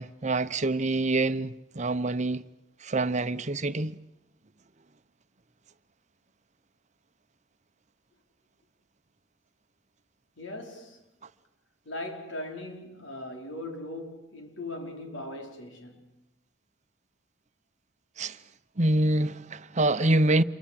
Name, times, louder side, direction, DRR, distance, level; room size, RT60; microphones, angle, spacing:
voice 1, 0.0-2.4 2.8-4.0 18.2-18.4 18.8-20.4, right 2 dB, 40° right, 0.9 m, -26 dB
voice 2, 10.4-11.0 11.8-16.1, left 1 dB, 85° left, 5.1 m, -39 dB
28.5 x 24.0 x 7.7 m
head